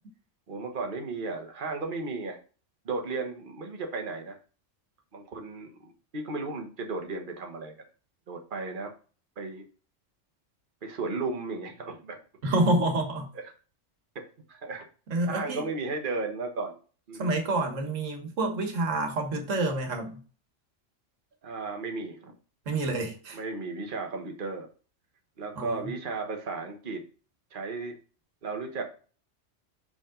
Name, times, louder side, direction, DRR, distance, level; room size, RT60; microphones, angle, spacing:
voice 1, 0.5-2.4 2.8-4.4 5.1-7.7 8.3-8.9 9.4-9.6 10.8-12.2 13.3-13.5 14.5-14.8 15.3-16.8 17.1-17.3 21.4-22.3 23.3-24.7 25.4-27.0 27.5-27.9 28.4-28.8, right 3 dB, 45° right, 1.3 m, -34 dB
voice 2, 12.4-13.3 15.1-15.6 17.2-20.2 22.7-23.4 25.6-25.9, right 2 dB, 85° right, 1.7 m, -28 dB
6.1 x 5.1 x 3.7 m
omnidirectional pair, 1.3 m